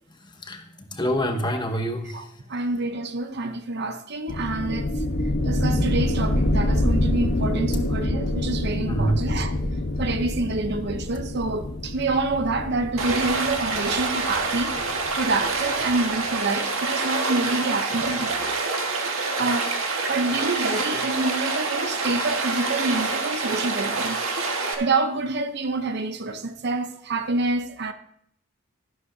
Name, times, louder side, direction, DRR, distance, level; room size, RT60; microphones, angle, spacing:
voice 1, 0.2-2.3 8.9-9.2, equal, 20° left, 1.0 m, -27 dB
voice 2, 2.5-4.9 5.4-9.5 10.0-14.8 15.1-18.6 19.4-19.7 20.1-24.2 24.8-27.9, right 3 dB, 50° right, 0.7 m, -27 dB
sound 1, 4.3-15.7, left 1 dB, 55° left, 1.1 m, -26 dB
Stream, 13.0-24.7, right 3 dB, 75° right, 1.6 m, -27 dB
12.5 x 11.5 x 2.7 m
head